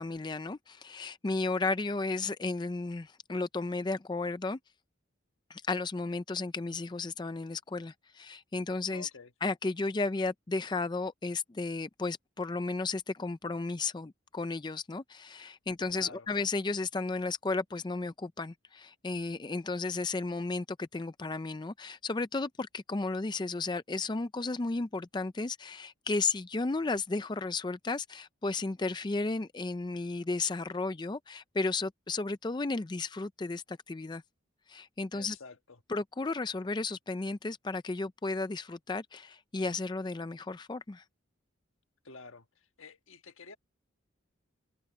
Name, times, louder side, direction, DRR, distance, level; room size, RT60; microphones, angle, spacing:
voice 1, 0.0-4.6 5.5-9.1 9.4-34.2 34.7-35.4 35.9-41.0, left 3 dB, 20° left, 0.4 m, -34 dB
voice 2, 8.9-9.3 15.9-16.3 35.1-35.8 42.0-43.6, left 4 dB, 80° left, 1.4 m, -50 dB
head